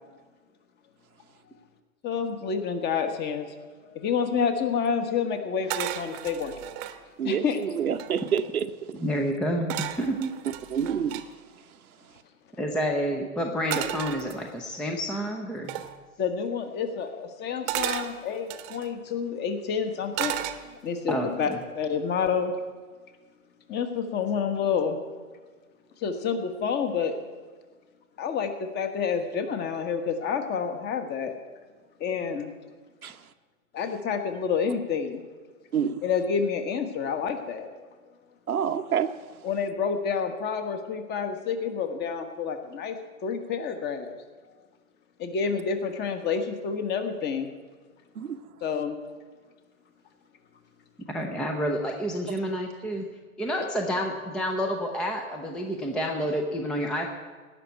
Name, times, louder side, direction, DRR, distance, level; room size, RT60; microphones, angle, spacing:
voice 1, 2.0-3.6 3.8-6.5 7.2-7.6 16.2-20.4 20.8-21.5 21.7-22.5 23.7-25.0 26.0-27.1 28.2-31.3 32.0-32.5 33.7-35.2 36.0-37.7 39.4-43.0 43.2-44.1 45.2-47.5 48.6-49.0 53.6-53.7, left 6 dB, 25° left, 1.3 m, -28 dB
sound 1, 5.7-7.0 7.6-7.7 7.9-8.5 9.7-11.3 13.7-14.8 15.7-16.0 17.7-18.9 20.1-21.0 21.4-21.8, right 13 dB, 30° right, 0.9 m, -34 dB
voice 2, 7.2-8.7 10.7-11.2 33.0-33.1 35.7-36.0 38.5-39.1 48.2-48.4, right 8 dB, 85° right, 0.9 m, -27 dB
voice 3, 9.0-10.3 12.6-15.8 21.1-21.6 51.1-53.1 53.4-57.1, equal, ahead, 0.5 m, -29 dB
17.5 x 6.0 x 9.1 m
hypercardioid pair, 120°, 42 cm